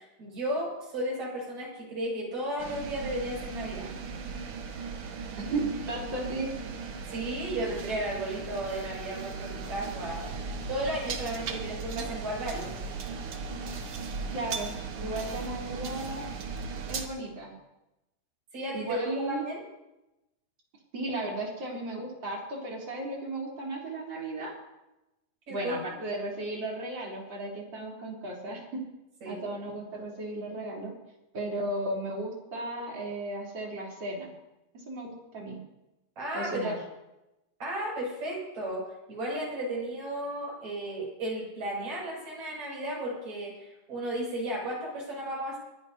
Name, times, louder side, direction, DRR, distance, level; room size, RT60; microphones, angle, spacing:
voice 1, 0.0-3.9 7.1-12.7 18.5-19.6 25.5-25.8 29.2-29.4 36.2-36.7 37.6-38.8 39.1-45.6, right 1 dB, 45° right, -4 dB, 8.4 m, -34 dB
sound 1, 2.6-17.1, right 4 dB, 70° right, 1.3 m, -37 dB
voice 2, 5.4-6.5 14.3-16.3 16.9-17.5 18.7-19.5 20.9-24.5 25.5-28.8 29.2-30.9 31.3-34.3 34.7-35.6 36.3-36.8, right 2 dB, 30° right, -3 dB, 4.2 m, -35 dB
23.5 x 16.0 x 2.9 m, 0.95 s
omnidirectional pair, 4.5 m